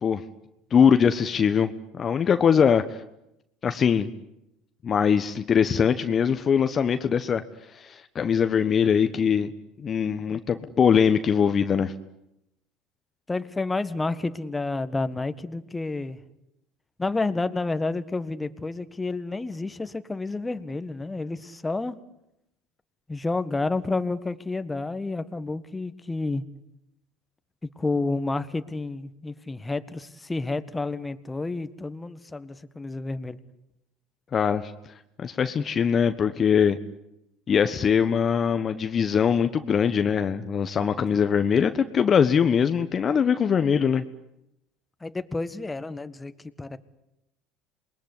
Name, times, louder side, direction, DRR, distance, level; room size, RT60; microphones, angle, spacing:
voice 1, 0.7-3.0 3.6-4.1 4.8-7.4 7.7-9.5 9.8-11.9 34.3-34.7 35.2-36.8 37.5-44.0, left 7 dB, 40° left, 9 dB, 1.2 m, -22 dB
voice 2, 13.3-16.2 17.0-22.0 23.1-26.4 27.8-33.4 45.0-46.3 46.6-46.8, left 3 dB, 15° left, 11 dB, 1.6 m, -30 dB
27.5 x 20.5 x 9.9 m, 0.85 s
hypercardioid pair, 80°, 0 cm